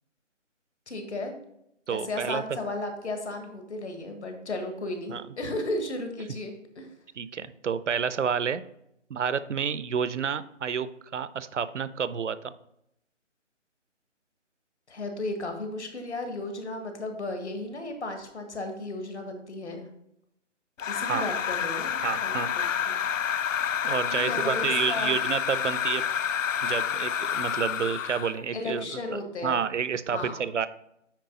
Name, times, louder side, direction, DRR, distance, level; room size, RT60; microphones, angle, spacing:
voice 1, 0.9-1.3 1.9-6.9 14.9-19.9 20.9-23.0 24.1-25.1 28.5-29.6 30.1-30.4, left 2 dB, 65° left, 5 dB, 1.7 m, -34 dB
voice 2, 1.9-2.4 5.1-5.2 7.2-8.6 9.1-12.5 21.1-21.2 22.0-22.5 23.8-26.0 26.6-30.7, right 7 dB, 70° right, 15 dB, 0.6 m, -29 dB
sound 1, 20.8-28.4, left 8 dB, 85° left, 0.6 m, -29 dB
9.1 x 4.5 x 3.9 m, 0.79 s
figure-of-eight pair, 170°, 37 cm